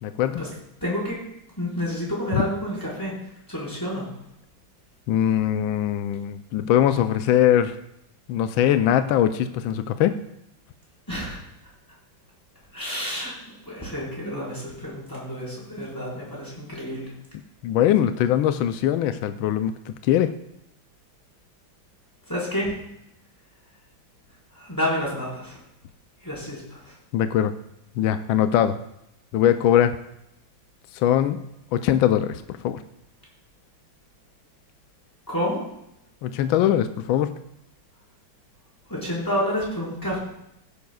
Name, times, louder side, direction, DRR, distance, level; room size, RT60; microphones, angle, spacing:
voice 1, 0.0-0.4 2.3-2.4 5.1-7.7 8.3-10.1 17.6-20.3 27.1-27.5 28.0-28.8 29.3-30.0 30.9-31.4 31.7-32.8 36.2-37.4, left 11 dB, 80° left, 10 dB, 1.4 m, -21 dB
voice 2, 0.8-1.2 1.6-3.1 3.5-4.1 11.1-11.4 12.7-13.3 13.7-17.1 22.3-22.7 24.5-25.6 26.2-26.9 35.3-35.6 38.9-40.2, equal, 10° left, -6 dB, 4.6 m, -29 dB
16.5 x 10.5 x 2.3 m, 0.81 s
omnidirectional pair, 2.2 m